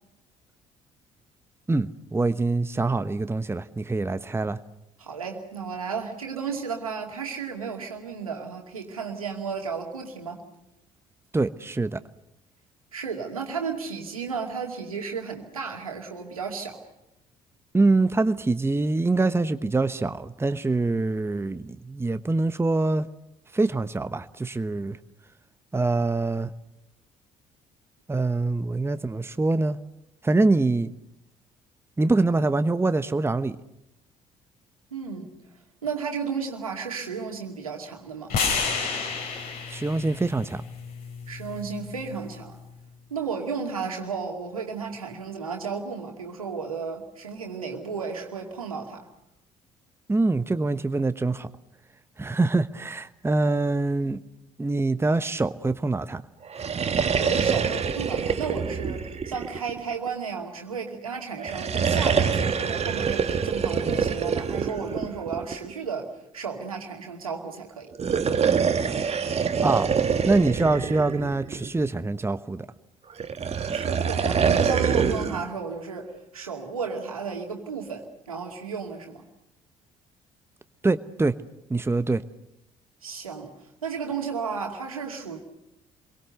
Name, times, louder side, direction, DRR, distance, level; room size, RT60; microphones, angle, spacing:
voice 1, 1.7-4.6 11.3-12.0 17.7-23.1 23.5-25.0 25.7-26.5 28.1-29.8 30.2-30.9 32.0-33.5 39.7-40.6 50.1-51.5 52.2-54.2 54.6-56.2 69.6-69.9 70.2-72.7 80.8-81.4 81.7-82.2, right 3 dB, 15° right, 1.1 m, -24 dB
voice 2, 5.0-10.4 12.9-16.8 34.9-35.3 35.8-38.4 41.3-42.6 43.1-49.0 57.2-67.9 73.7-79.2 83.0-83.5 83.8-85.4, right 5 dB, 85° right, 2.6 m, -33 dB
sound 1, 38.3-42.5, left 5 dB, 60° left, 5.7 m, -31 dB
sound 2, 56.5-60.1 61.4-65.7 67.9-71.9 73.2-75.5, right 6 dB, 35° right, 1.7 m, -25 dB
26.5 x 23.0 x 6.8 m
figure-of-eight pair, 50°, 18 cm